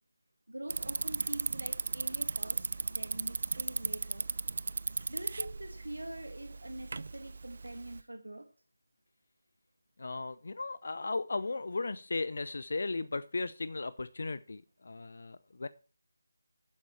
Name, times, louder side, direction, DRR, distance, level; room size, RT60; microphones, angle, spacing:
voice 1, 0.5-4.3 5.1-8.5, right 1 dB, 80° right, 6 dB, 1.6 m, -44 dB
Bicycle, 0.7-8.0, right 4 dB, 50° right, 0.5 m, -36 dB
voice 2, 10.0-15.7, left 3 dB, 55° left, 16 dB, 0.6 m, -36 dB
12.0 x 10.0 x 4.5 m, 0.38 s
figure-of-eight pair, 160°, 0 cm